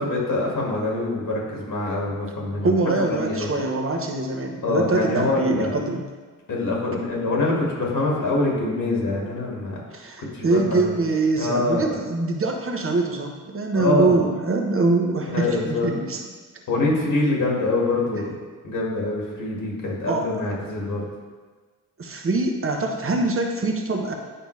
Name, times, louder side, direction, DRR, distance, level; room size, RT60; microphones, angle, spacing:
voice 1, 0.0-3.5 4.6-5.7 6.5-9.8 10.2-10.9 11.4-12.0 13.7-14.1 15.3-15.9 16.7-18.3 18.6-21.0, left 2 dB, 70° left, -3 dB, 1.9 m, -24 dB
voice 2, 2.6-6.0 9.9-16.2 20.1-20.6 22.0-24.1, right 3 dB, 40° right, 2 dB, 1.0 m, -24 dB
8.9 x 5.2 x 3.2 m, 1.4 s
cardioid pair, 100°, 33 cm